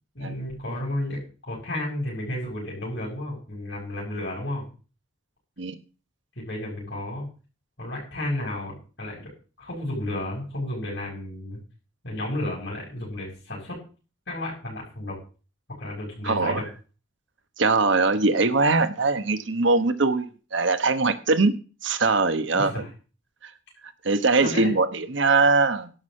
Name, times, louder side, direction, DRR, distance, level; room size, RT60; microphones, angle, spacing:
voice 1, 0.1-4.6 6.4-7.3 7.8-9.3 9.6-11.6 12.0-13.8 14.3-15.1 15.8-16.6 22.5-22.9 24.4-24.7, left 1 dB, 55° left, -6 dB, 6.1 m, -32 dB
voice 2, 16.2-16.6 17.6-21.5 21.8-22.8 23.4-23.5 24.0-25.9, right 3 dB, 65° right, 10 dB, 1.1 m, -22 dB
12.0 x 6.3 x 7.5 m, 0.36 s
head